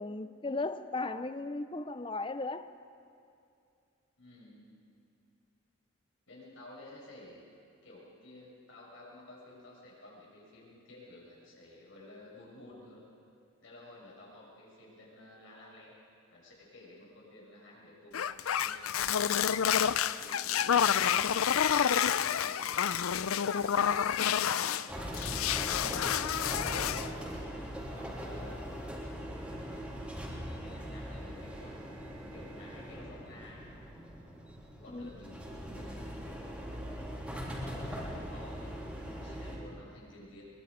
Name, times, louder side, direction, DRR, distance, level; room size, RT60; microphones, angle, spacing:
voice 1, 0.0-2.7 34.9-35.1, left 3 dB, 25° left, 12 dB, 0.6 m, -36 dB
voice 2, 4.2-4.7 6.3-7.4 7.8-13.0 13.6-15.9 16.3-19.1 19.6-21.9 22.4-26.6 27.1-29.9 30.4-33.6 34.8-36.8 37.4-40.5, left 1 dB, 70° left, -4 dB, 6.8 m, -53 dB
sound 1, 18.1-24.9 25.1-27.1, left 8 dB, 90° left, 0.5 m, -29 dB
sound 2, 24.9-39.6, equal, 5° right, 3.5 m, -41 dB
23.0 x 23.0 x 5.1 m, 2.5 s
head